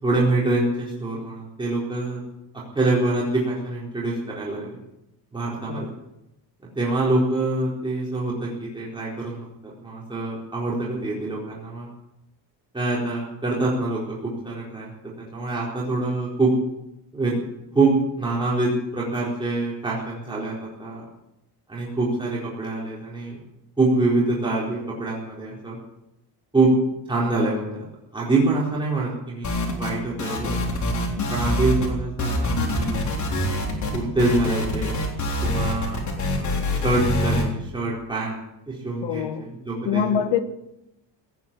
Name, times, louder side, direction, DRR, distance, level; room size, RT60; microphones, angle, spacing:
voice 1, 0.0-2.2 2.7-4.8 5.3-5.9 6.8-11.9 12.7-14.9 15.3-16.5 17.1-17.4 17.7-20.5 20.8-21.1 21.7-23.4 23.8-25.8 26.5-26.7 27.1-27.9 28.1-30.6 31.3-33.0 33.9-35.0 35.4-36.0 36.3-38.4 38.7-40.2, right 2 dB, 10° right, 4.2 m, -25 dB
sound 1, 29.4-29.9 30.2-31.9 32.2-37.4, left 1 dB, 45° left, 3.7 m, -25 dB
voice 2, 39.0-39.5 39.8-40.4, left 9 dB, 75° left, 1.6 m, -25 dB
17.5 x 9.5 x 8.6 m
cardioid pair, 140°, 42 cm